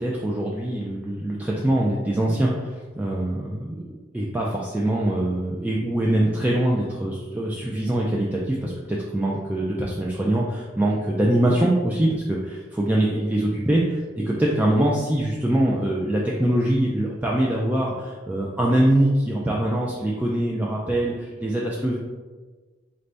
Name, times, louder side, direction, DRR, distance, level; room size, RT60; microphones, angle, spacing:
voice 1, 0.0-3.8 4.1-9.6 10.0-13.8 14.4-22.0, right 1 dB, 10° right, -4 dB, 0.3 m, -23 dB
4.3 x 2.6 x 3.3 m, 1.3 s
head